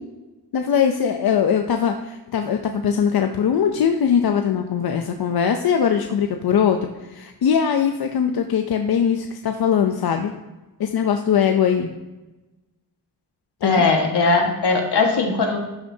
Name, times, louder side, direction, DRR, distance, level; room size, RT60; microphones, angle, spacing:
voice 1, 0.5-10.3 10.8-11.9 13.6-13.8, left 7 dB, 65° left, 5 dB, 0.6 m, -21 dB
voice 2, 13.6-15.6, left 3 dB, 85° left, 1 dB, 1.6 m, -19 dB
12.5 x 6.4 x 2.7 m, 1.1 s
wide cardioid pair, 150°, 39 cm